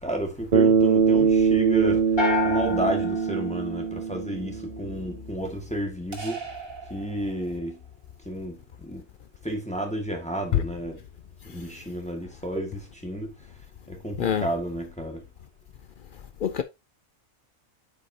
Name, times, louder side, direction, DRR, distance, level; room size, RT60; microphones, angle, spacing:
voice 1, 0.0-2.0 2.4-6.4 6.9-7.8 8.2-9.0 9.4-11.0 11.5-13.3 13.9-15.2, equal, 5° left, 1.6 m, -31 dB
Bass guitar, 0.5-4.9, right 5 dB, 45° right, 0.8 m, -22 dB
sound 1, 2.2-4.4, left 5 dB, 40° left, 2.7 m, -30 dB
sound 2, 6.1-7.8, right 5 dB, 80° right, 2.4 m, -39 dB
voice 2, 11.4-11.8 14.2-14.5 16.1-16.6, left 9 dB, 70° left, 0.5 m, -27 dB
8.2 x 5.5 x 2.7 m
omnidirectional pair, 1.4 m